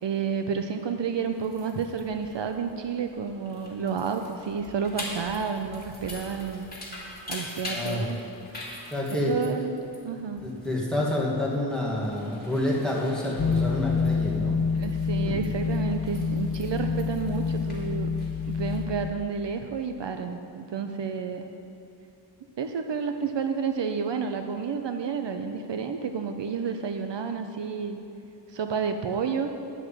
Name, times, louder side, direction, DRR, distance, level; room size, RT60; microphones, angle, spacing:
voice 1, 0.0-6.7 7.3-8.3 9.3-9.7 10.0-10.4 14.8-18.1 18.5-21.4 22.6-28.0 28.5-29.5, right 6 dB, 70° right, 6 dB, 0.6 m, -30 dB
sound 1, 1.2-18.8, left 1 dB, 20° left, 2.6 m, -44 dB
voice 2, 7.7-8.1 8.9-9.5 10.4-14.6 15.2-15.4, left 1 dB, ahead, -5 dB, 2.0 m, -28 dB
sound 2, 13.4-19.1, left 5 dB, 45° left, 0.5 m, -27 dB
10.0 x 6.4 x 7.5 m, 2.7 s
wide cardioid pair, 110°, 44 cm